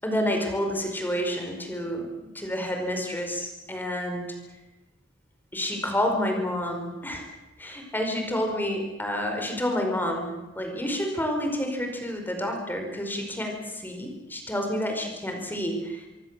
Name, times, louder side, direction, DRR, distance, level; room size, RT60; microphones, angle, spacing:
voice 1, 0.0-4.3 5.5-7.2 7.6-16.1, equal, 10° left, 3 dB, 5.0 m, -29 dB
25.5 x 23.0 x 7.6 m, 1.0 s
head